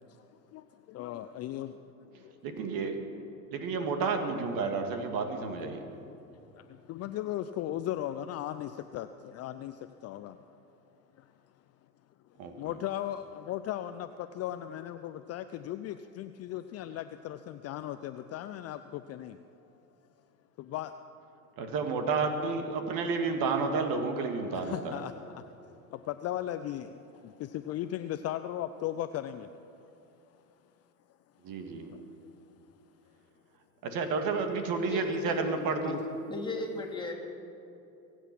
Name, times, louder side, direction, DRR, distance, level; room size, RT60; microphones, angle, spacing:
voice 1, 0.9-1.7 6.9-9.7 10.0-10.3 12.6-19.4 20.7-20.9 24.5-25.4 25.9-26.9 27.2-29.5 35.8-36.0, left 12 dB, 35° left, 10 dB, 0.5 m, -37 dB
voice 2, 2.4-3.0 3.5-5.8 12.4-12.5 21.6-25.0 31.4-31.9 33.8-36.0, right 4 dB, 50° right, 6 dB, 1.9 m, -31 dB
voice 3, 34.9-35.3 36.3-37.1, left 2 dB, 10° left, -2 dB, 2.9 m, -36 dB
23.5 x 8.2 x 6.0 m, 2.9 s
hypercardioid pair, 85°, 43 cm